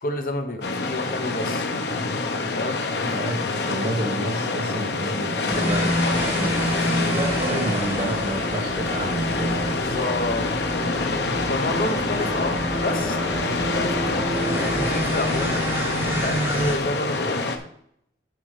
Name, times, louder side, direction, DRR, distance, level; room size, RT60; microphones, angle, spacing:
voice 1, 0.0-1.7 2.5-2.8 6.7-7.0 9.7-10.5 11.5-15.7 16.2-17.4, left 2 dB, 50° left, 6 dB, 1.0 m, -30 dB
sound 1, 0.6-17.6, left 3 dB, 75° left, 1.1 m, -26 dB
voice 2, 3.1-9.8 11.7-11.9, right 1 dB, 35° right, -1 dB, 1.6 m, -29 dB
sound 2, 5.5-16.7, right 1 dB, 15° right, 3.0 m, -28 dB
9.2 x 5.3 x 5.0 m, 0.72 s
head